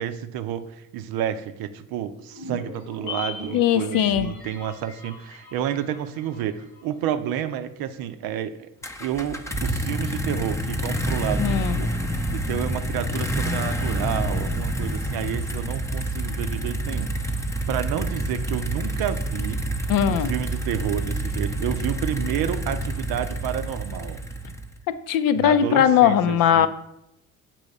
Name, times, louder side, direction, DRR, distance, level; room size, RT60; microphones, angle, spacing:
voice 1, 0.0-8.7 9.0-11.9 12.3-19.6 20.1-24.2 25.3-26.7, right 10 dB, 60° right, 10 dB, 0.6 m, -30 dB
sound 1, 2.3-6.8 7.1-7.2, left 3 dB, 90° left, 1.4 m, -39 dB
voice 2, 3.5-4.3 11.4-11.8 19.9-20.3 24.9-26.7, left 10 dB, 55° left, 12 dB, 0.6 m, -19 dB
sound 2, 8.8-24.8, right 1 dB, 5° left, 0.6 m, -28 dB
6.9 x 3.0 x 5.3 m, 0.80 s
hypercardioid pair, 55°, 41 cm